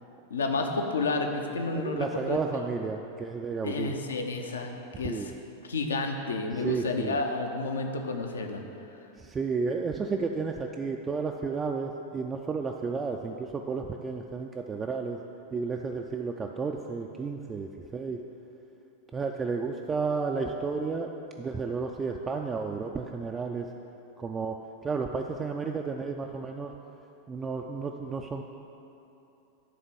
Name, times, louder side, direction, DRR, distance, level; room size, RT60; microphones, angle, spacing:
voice 1, 0.3-2.4 3.6-5.3 5.7-8.6, left 3 dB, 70° left, 4 dB, 0.7 m, -30 dB
voice 2, 1.7-3.9 5.0-5.3 6.6-7.2 9.2-15.2 15.5-18.2 19.1-23.7 24.2-24.6 24.8-26.7 27.3-28.4, right 4 dB, 20° right, 2 dB, 0.3 m, -32 dB
10.0 x 3.6 x 6.1 m, 2.9 s
figure-of-eight pair, 90°, 0 cm